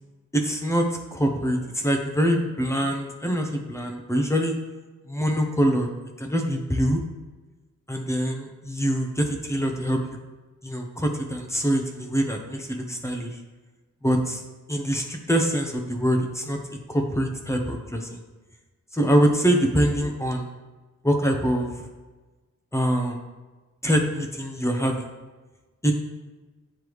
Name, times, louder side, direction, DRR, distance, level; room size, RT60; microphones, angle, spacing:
voice 1, 0.3-4.5 5.1-5.9 6.2-7.0 7.9-10.0 10.6-13.3 14.0-14.4 14.7-16.6 16.9-18.2 18.9-20.5 21.0-21.8 22.7-23.2 23.8-25.1 25.8-25.9, equal, 10° left, 3 dB, 0.7 m, -24 dB
9.5 x 3.3 x 3.1 m, 1.2 s
wide cardioid pair, 130°, 30 cm